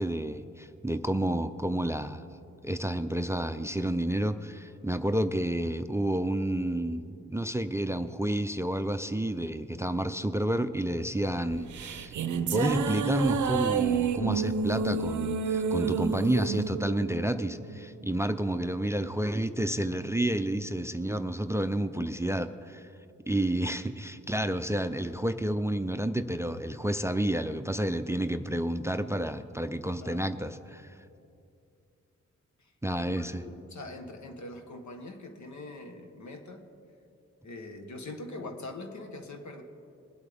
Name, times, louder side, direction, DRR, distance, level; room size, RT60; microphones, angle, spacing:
voice 1, 0.0-2.2 2.6-22.9 23.3-30.9 32.8-33.4, right 1 dB, 10° right, 11 dB, 0.4 m, -30 dB
sound 1, 11.5-18.1, right 6 dB, 80° right, 0.6 m, -29 dB
voice 2, 32.6-36.7 37.4-39.6, left 2 dB, 75° left, 5 dB, 1.2 m, -43 dB
20.5 x 8.3 x 3.5 m, 2.6 s
cardioid pair, 55°, 29 cm